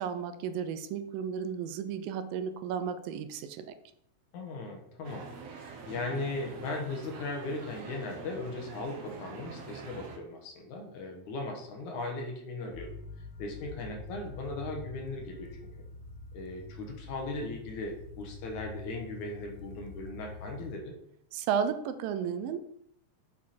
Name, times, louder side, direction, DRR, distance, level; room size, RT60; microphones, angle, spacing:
voice 1, 0.0-3.7 21.3-22.6, right 7 dB, 85° right, 10 dB, 2.4 m, -33 dB
voice 2, 4.3-5.3 5.6-13.0 13.4-15.7 16.3-21.0, left 2 dB, 65° left, 2 dB, 2.5 m, -38 dB
sound 1, 5.0-10.2, right 5 dB, 65° right, 1.9 m, -45 dB
sound 2, 12.7-20.8, left 3 dB, 85° left, 1.6 m, -46 dB
7.1 x 6.4 x 4.2 m, 0.74 s
omnidirectional pair, 4.0 m